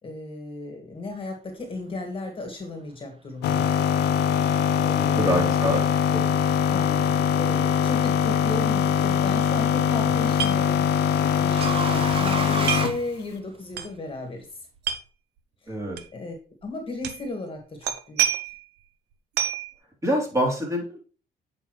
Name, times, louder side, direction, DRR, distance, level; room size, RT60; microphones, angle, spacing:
voice 1, 0.0-3.7 4.8-5.4 6.6-14.5 15.6-15.8 16.1-16.3 16.6-18.2, left 2 dB, 30° left, 4 dB, 1.9 m, -35 dB
sound 1, 3.4-13.0, left 8 dB, 85° left, 0.6 m, -22 dB
voice 2, 5.0-5.8 6.1-6.2 15.7-16.0 20.0-21.0, equal, 20° right, -1 dB, 3.4 m, -26 dB
sound 2, 9.9-13.8, right 5 dB, 35° right, 0.7 m, -33 dB
sound 3, 10.4-10.6 10.9-11.0 11.6-11.8 12.7-13.0 13.8-13.9 14.8-15.0 16.0-16.1 17.0-17.3 17.8-18.6 19.4-19.7, right 10 dB, 80° right, 0.8 m, -27 dB
8.4 x 5.4 x 3.2 m, 0.39 s
cardioid pair, 90°, 17 cm